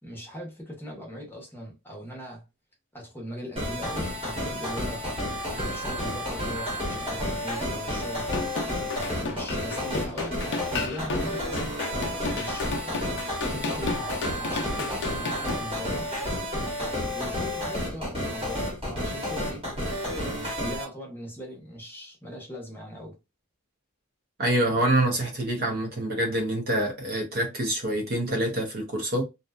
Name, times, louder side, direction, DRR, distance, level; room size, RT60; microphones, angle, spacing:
voice 1, 0.0-2.4 2.9-5.1 5.5-8.2 8.9-11.8 12.3-13.1 13.5-16.1 16.8-19.7 20.1-23.2 24.7-24.8, equal, 10° left, 0.8 m, -40 dB
sound 1, 3.6-20.8, left 1 dB, 25° right, 1.1 m, -31 dB
sound 2, 5.4-16.4, equal, 85° right, 0.9 m, -46 dB
sound 3, 8.2-15.6, left 3 dB, 55° left, 0.5 m, -33 dB
voice 2, 24.4-29.2, right 1 dB, 45° right, 0.6 m, -26 dB
2.6 x 2.2 x 2.2 m
head